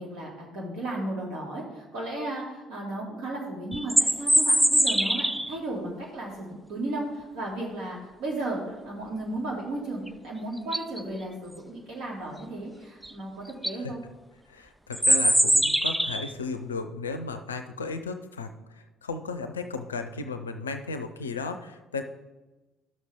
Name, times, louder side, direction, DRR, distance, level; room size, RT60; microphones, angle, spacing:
voice 1, 0.0-14.0, right 1 dB, 60° right, -3 dB, 2.4 m, -34 dB
sound 1, 3.7-5.5 10.1-10.2 10.6-11.0 13.0-13.1 13.5-13.8 14.9-16.3, right 1 dB, 5° right, 0.4 m, -22 dB
voice 2, 14.5-22.0, left 4 dB, 80° left, 8 dB, 0.5 m, -35 dB
12.0 x 6.4 x 3.6 m, 1.1 s
figure-of-eight pair, 50°, 0 cm